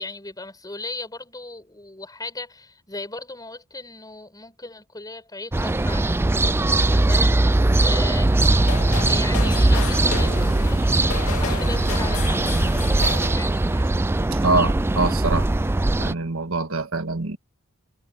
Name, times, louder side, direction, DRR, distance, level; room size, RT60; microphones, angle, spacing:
voice 1, 0.0-13.9, left 3 dB, 20° left, 5.9 m, -37 dB
sound 1, 5.5-16.1, right 2 dB, 10° right, 0.4 m, -20 dB
sound 2, 8.2-13.5, left 5 dB, 90° left, 2.6 m, -33 dB
voice 2, 14.3-15.5 16.0-17.4, right 3 dB, 70° right, 1.7 m, -24 dB
head